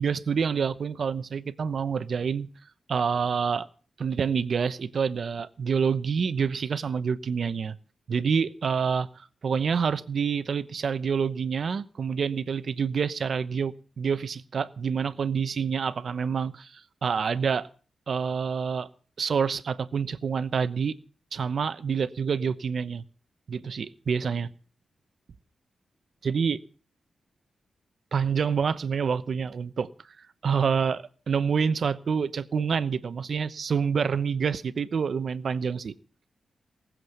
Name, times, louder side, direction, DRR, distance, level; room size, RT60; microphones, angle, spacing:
voice 1, 0.0-2.5 2.9-3.7 4.0-7.8 8.1-17.7 18.1-18.9 19.2-20.9 21.3-23.0 23.5-24.5 26.2-26.6 28.1-29.9 30.4-35.9, right 6 dB, 55° right, 0.9 m, -27 dB
19.0 x 7.6 x 8.2 m
wide cardioid pair, 130°, 0 cm